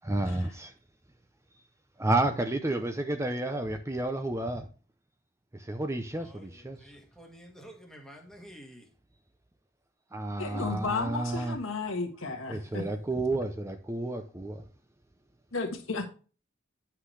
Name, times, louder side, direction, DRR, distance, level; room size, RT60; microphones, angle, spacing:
voice 1, 0.1-0.7 2.0-4.7 5.6-6.8 10.1-11.6 12.5-14.6, right 2 dB, 15° right, 0.6 m, -31 dB
voice 2, 6.8-8.8, equal, 5° left, 1.5 m, -49 dB
voice 3, 10.4-12.8 15.5-16.0, left 4 dB, 85° left, 1.6 m, -33 dB
9.7 x 5.8 x 3.3 m
head